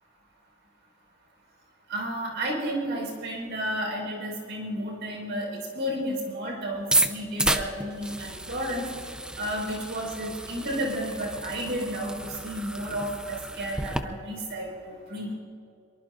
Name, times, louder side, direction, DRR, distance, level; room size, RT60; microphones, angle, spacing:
voice 1, 1.9-8.8 9.4-15.3, equal, 65° right, -1 dB, 5.0 m, -32 dB
sound 1, 6.8-14.0, right 1 dB, 5° right, 0.7 m, -31 dB
24.0 x 23.5 x 2.6 m, 2.6 s
head